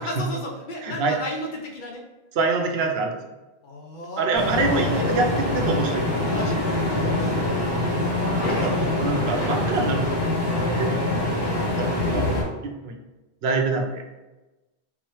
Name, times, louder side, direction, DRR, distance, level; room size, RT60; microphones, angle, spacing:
voice 1, 0.0-2.0 3.6-4.8 6.1-7.3 8.4-8.7 9.4-9.6 11.4-12.3, left 1 dB, 55° left, 1 dB, 0.8 m, -34 dB
voice 2, 0.8-1.2 2.3-3.2 4.2-6.1 6.3-6.6 8.6-10.3 10.7-11.2 11.8-13.0 13.4-14.0, right 3 dB, 80° right, 3 dB, 0.9 m, -26 dB
sound 1, 4.3-12.4, left 1 dB, 25° left, 0.9 m, -24 dB
3.5 x 3.1 x 3.0 m, 1.1 s
omnidirectional pair, 1.0 m